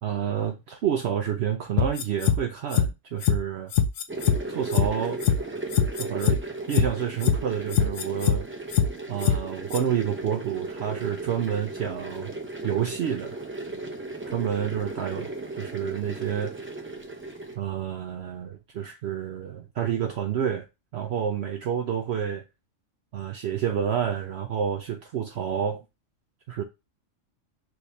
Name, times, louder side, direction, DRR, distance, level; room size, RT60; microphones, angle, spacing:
voice 1, 0.0-3.7 4.5-5.2 6.0-6.4 6.7-8.5 9.1-12.3 12.6-13.4 14.3-15.3 15.6-16.6 17.6-20.7 20.9-22.4 23.1-25.8 26.5-26.6, right 9 dB, 65° right, 0.8 m, -29 dB
sound 1, 1.8-2.4 2.7-2.9 3.2-3.4 3.7-4.4 4.7-4.9 5.2-5.4 5.7-6.4 6.7-6.9 7.2-7.4 7.7-8.4 8.7-8.9 9.2-9.4 9.7-9.8, left 8 dB, 70° left, 0.9 m, -21 dB
sound 2, 4.1-17.6, right 2 dB, 15° right, 0.5 m, -36 dB
6.2 x 3.1 x 2.7 m
omnidirectional pair, 1.3 m